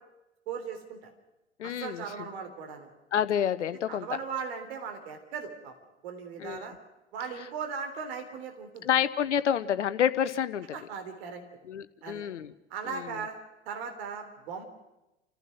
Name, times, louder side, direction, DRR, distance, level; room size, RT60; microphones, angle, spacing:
voice 1, 0.5-1.1 1.6-2.9 3.9-5.7 6.0-6.7 7.1-8.9 10.7-11.4 12.0-12.2 12.7-13.4 13.7-14.6, right 6 dB, 60° right, 5 dB, 3.6 m, -38 dB
voice 2, 1.6-2.0 3.1-4.1 6.4-6.6 8.8-10.7 11.7-12.5 12.9-13.0, left 9 dB, 70° left, 14 dB, 1.0 m, -28 dB
29.0 x 15.0 x 6.3 m, 0.98 s
figure-of-eight pair, 80°, 36 cm